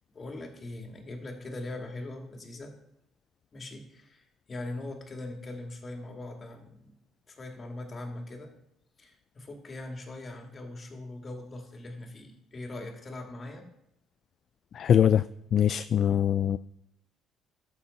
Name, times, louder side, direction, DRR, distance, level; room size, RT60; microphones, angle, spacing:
voice 1, 0.1-2.8 3.5-7.0 7.3-8.6 9.0-13.7, left 2 dB, 40° left, 3 dB, 2.4 m, -41 dB
voice 2, 14.7-15.2 15.5-16.6, left 9 dB, 55° left, 14 dB, 0.3 m, -22 dB
12.5 x 6.8 x 4.3 m, 0.78 s
supercardioid pair, 70°, 0 cm